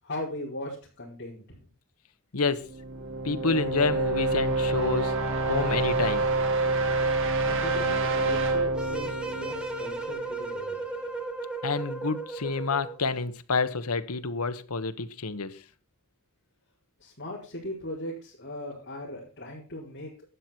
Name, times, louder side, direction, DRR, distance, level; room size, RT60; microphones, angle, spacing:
voice 1, 0.0-1.7 7.4-10.8 17.0-20.1, left 1 dB, 50° left, 4.9 m, -38 dB
voice 2, 2.3-2.7 3.2-5.2 5.5-6.3 11.6-15.6, left 4 dB, 80° left, 1.2 m, -28 dB
sound 1, 2.6-10.4, right 3 dB, 60° right, 2.3 m, -27 dB
sound 2, 8.8-13.1, right 2 dB, 5° right, 2.0 m, -35 dB
12.5 x 9.6 x 4.5 m
head